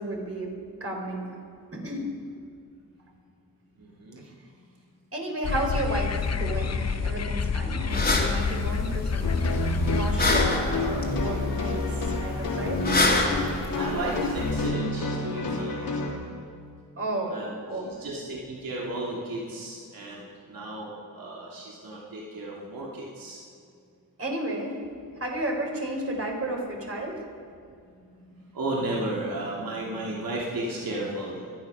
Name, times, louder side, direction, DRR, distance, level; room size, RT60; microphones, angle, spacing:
voice 1, 0.0-1.4 1.7-2.1 4.2-4.3 5.1-9.4 9.8-11.9 12.2-12.9 17.0-17.9 24.2-24.8 25.2-27.2, right 1 dB, 40° right, 0 dB, 4.0 m, -32 dB
voice 2, 3.8-4.2 13.7-15.9 17.2-17.6 17.8-23.4 28.5-31.5, right 1 dB, 70° right, -4 dB, 2.8 m, -34 dB
sound 1, 5.4-10.5, left 5 dB, 45° left, 1.0 m, -28 dB
sound 2, 7.9-14.7, left 2 dB, 25° left, 2.6 m, -28 dB
sound 3, 9.2-16.1, left 2 dB, 75° left, 3.5 m, -29 dB
24.5 x 9.5 x 5.7 m, 2.4 s
cardioid pair, 90°, 36 cm